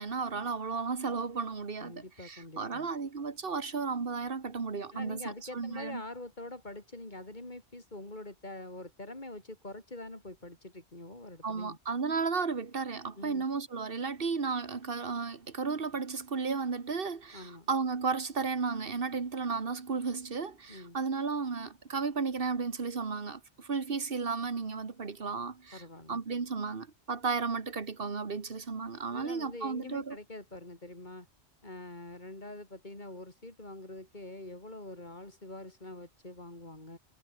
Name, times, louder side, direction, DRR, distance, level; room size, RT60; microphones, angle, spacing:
voice 1, 0.0-6.0 11.4-25.8 26.1-30.2, right 4 dB, 55° right, 1.8 m, -34 dB
voice 2, 1.8-2.9 4.9-11.8 13.2-13.4 17.3-17.7 20.7-21.0 25.7-26.2 29.1-31.3 31.6-37.0, left 2 dB, 40° left, 4.4 m, -45 dB
omnidirectional pair, 1.1 m